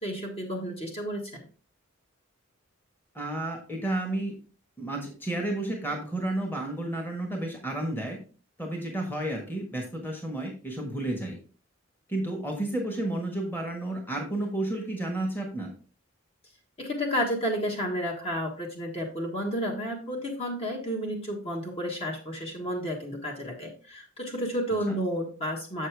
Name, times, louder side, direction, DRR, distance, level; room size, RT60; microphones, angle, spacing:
voice 1, 0.0-1.5 16.8-25.9, equal, 30° left, 1 dB, 1.5 m, -31 dB
voice 2, 3.1-4.3 4.8-8.2 8.6-11.4 12.1-15.7 24.9-25.0, right 1 dB, 10° left, 2 dB, 1.4 m, -31 dB
7.2 x 6.6 x 3.4 m, 0.36 s
head